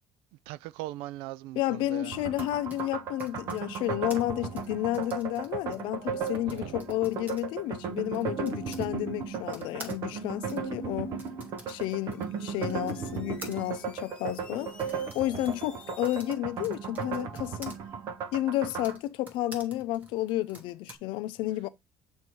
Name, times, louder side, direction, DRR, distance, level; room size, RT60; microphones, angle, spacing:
voice 1, 0.5-2.2 6.5-6.8, right 16 dB, 80° right, 0.4 m, -40 dB
voice 2, 1.6-11.2 11.7-17.7 18.3-21.7, left 15 dB, 60° left, 0.6 m, -31 dB
Typing, 2.1-8.9 9.5-17.8 18.5-21.0, right 2 dB, 20° right, 1.1 m, -50 dB
sound 1, 2.1-19.0, right 6 dB, 35° right, 0.6 m, -36 dB
sound 2, 11.5-16.3, left 4 dB, 10° left, 0.8 m, -54 dB
7.8 x 2.7 x 4.5 m
cardioid pair, 175°, 9 cm